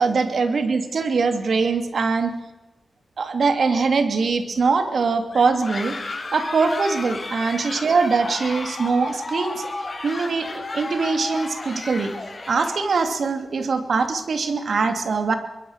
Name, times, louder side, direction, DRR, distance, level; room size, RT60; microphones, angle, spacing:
voice 1, 0.0-2.3 3.2-6.0 6.3-9.7 10.0-12.1 12.5-15.3, right 4 dB, 75° right, 7 dB, 2.7 m, -22 dB
sound 1, 5.3-13.1, left 2 dB, 45° left, 7.1 m, -33 dB
24.0 x 21.0 x 6.6 m, 1.0 s
cardioid pair, 55°, 0 cm